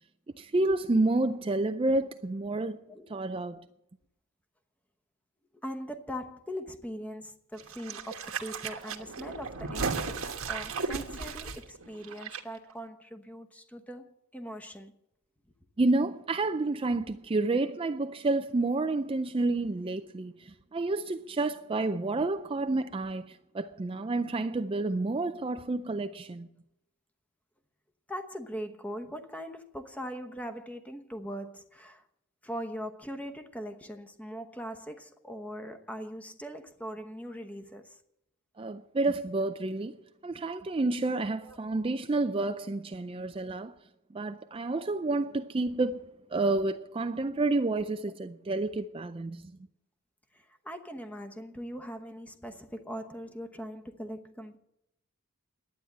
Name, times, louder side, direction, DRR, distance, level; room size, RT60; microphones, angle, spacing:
voice 1, 0.4-2.8 3.1-3.6 15.8-26.5 38.6-40.0 40.2-43.7 44.1-46.0 46.3-49.4, right 2 dB, 25° right, 0.4 m, -29 dB
voice 2, 5.6-14.9 19.8-19.9 24.5-24.6 28.1-32.0 32.4-38.0 41.4-41.6 50.3-54.6, equal, 5° left, 1.0 m, -41 dB
sound 1, 7.6-12.4 12.7-12.8, right 4 dB, 70° right, 1.3 m, -35 dB
11.5 x 9.4 x 8.5 m
head